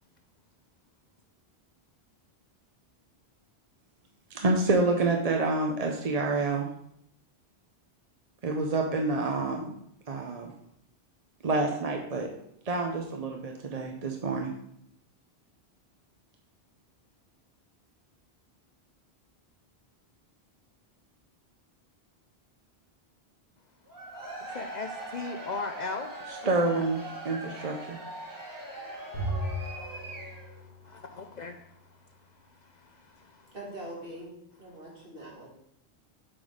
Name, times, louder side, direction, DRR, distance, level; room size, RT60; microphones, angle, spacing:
voice 1, 4.3-6.7 8.4-9.7 10.1-10.5 11.4-12.3 12.7-14.5 26.4-27.0 27.2-28.0, right 3 dB, 40° right, 2 dB, 0.7 m, -27 dB
Cheering / Crowd, 23.9-30.6, right 2 dB, 20° right, 1.5 m, -41 dB
voice 2, 24.5-26.1 26.7-26.8 29.9-31.9 32.6-33.5, left 4 dB, 55° left, 6 dB, 0.6 m, -39 dB
Bowed string instrument, 29.1-31.7, right 1 dB, 85° left, 2.3 m, -37 dB
voice 3, 33.5-34.3 34.6-35.5, right 1 dB, 60° right, -4 dB, 2.6 m, -42 dB
7.6 x 4.0 x 4.9 m, 0.73 s
omnidirectional pair, 1.1 m